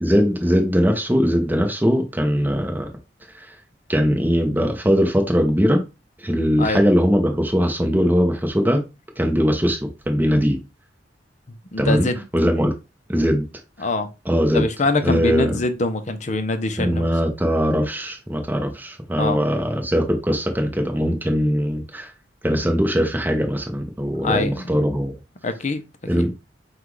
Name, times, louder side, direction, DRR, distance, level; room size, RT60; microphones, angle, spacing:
voice 1, 0.0-2.8 3.9-5.8 6.2-8.8 9.2-9.8 10.1-10.6 11.8-12.1 12.3-12.7 13.1-13.4 14.3-14.7 15.0-15.6 16.8-22.1 22.4-25.2 26.1-26.3, equal, 10° right, 0.9 m, -20 dB
voice 2, 11.7-12.2 13.8-14.1 14.5-17.1 19.2-19.4 24.2-24.7 25.4-25.8 26.2-26.3, left 2 dB, 40° left, 0.6 m, -24 dB
5.8 x 2.4 x 3.1 m
head